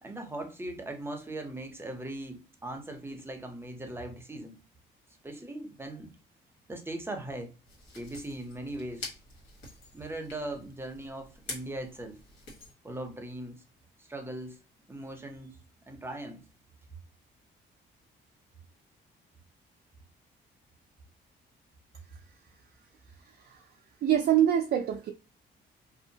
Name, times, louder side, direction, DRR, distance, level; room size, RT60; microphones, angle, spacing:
voice 1, 0.0-4.6 5.2-6.1 6.7-7.5 7.9-9.1 9.9-12.2 12.8-13.6 14.0-14.6 14.9-16.4, right 1 dB, 10° right, 0.7 m, -39 dB
sound 1, 7.6-12.7, left 3 dB, 75° left, 1.4 m, -46 dB
voice 2, 23.3-23.7 24.0-25.1, right 10 dB, 55° right, 0.4 m, -25 dB
2.7 x 2.0 x 2.7 m
cardioid pair, 90°, 20 cm